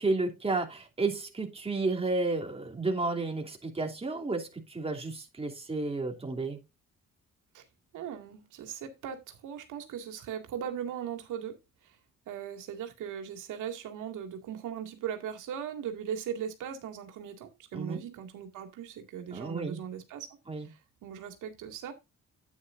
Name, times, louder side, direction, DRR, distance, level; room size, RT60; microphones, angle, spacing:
voice 1, 0.0-6.6 17.7-18.0 19.3-19.8 20.5-20.7, right 3 dB, 20° right, 3.0 m, -32 dB
voice 2, 7.9-11.6 11.8-12.0 12.3-20.3 20.6-21.9, right 8 dB, 85° right, 2.3 m, -39 dB
9.7 x 9.3 x 2.6 m
cardioid pair, 90°, 30 cm